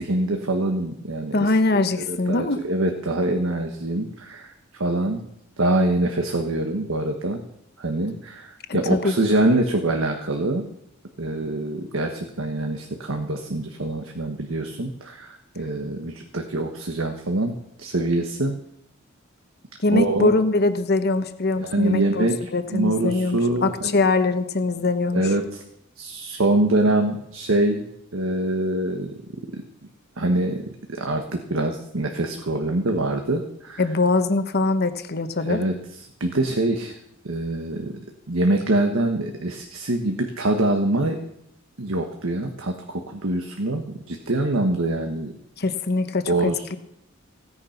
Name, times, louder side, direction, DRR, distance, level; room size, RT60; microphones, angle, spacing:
voice 1, 0.0-5.2 5.6-7.4 7.8-10.7 11.2-18.6 19.9-20.3 21.6-23.9 25.1-25.6 26.0-29.1 29.5-29.6 30.2-33.8 35.4-35.8 36.2-36.9 37.2-41.2 41.8-45.3 46.3-46.8, right 2 dB, 80° right, 4 dB, 1.4 m, -24 dB
voice 2, 1.3-2.6 8.9-9.1 19.8-25.2 33.8-35.6 45.6-46.8, left 3 dB, 50° left, 10 dB, 1.1 m, -22 dB
16.5 x 9.8 x 5.8 m, 0.77 s
head